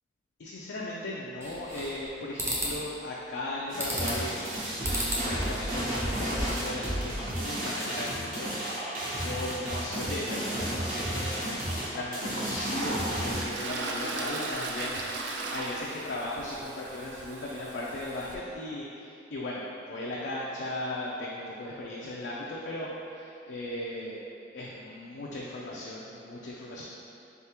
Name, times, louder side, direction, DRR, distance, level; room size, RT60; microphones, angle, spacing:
voice 1, 0.4-4.4 5.2-8.8 9.1-24.2 24.5-26.8, left 1 dB, 75° left, -5 dB, 0.4 m, -37 dB
sound 1, 1.4-2.1 2.4-2.7 3.8-4.3 4.8-5.3 5.6-6.7, right 1 dB, 15° right, 0.6 m, -33 dB
sound 2, 3.7-13.4, right 1 dB, 50° right, 1.0 m, -32 dB
Toilet flush, 11.5-11.6 12.2-18.4, right 2 dB, 85° right, 0.4 m, -36 dB
3.9 x 3.5 x 2.9 m, 2.7 s
head